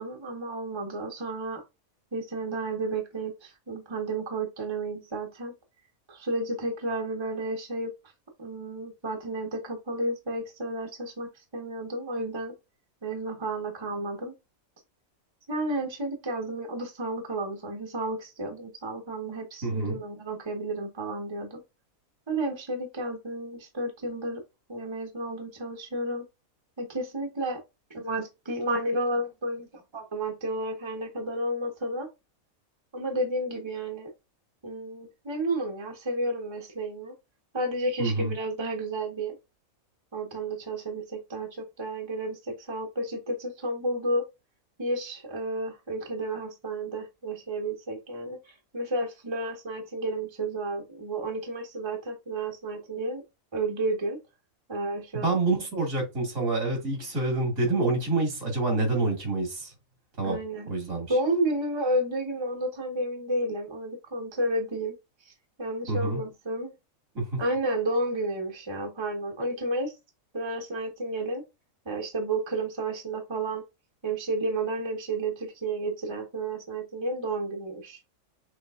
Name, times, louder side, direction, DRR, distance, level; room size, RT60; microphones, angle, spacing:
voice 1, 0.0-1.6 2.1-5.5 6.1-7.9 8.4-12.5 13.0-14.3 15.5-21.6 22.3-24.4 24.7-26.2 26.8-27.6 27.9-32.1 32.9-34.1 34.6-37.1 37.5-39.4 40.1-44.2 44.8-53.2 53.5-54.2 54.7-55.3 60.2-60.7 61.1-65.0 65.2-65.3 65.6-66.7 67.4-69.9 70.3-71.4 71.8-73.6 74.0-78.0, right 1 dB, 20° right, 1.2 m, -31 dB
voice 2, 19.6-20.0 38.0-38.3 55.1-59.7 60.2-60.4 60.7-61.1 65.9-66.2, right 3 dB, 70° right, 2.6 m, -27 dB
6.2 x 3.3 x 2.4 m
omnidirectional pair, 1.5 m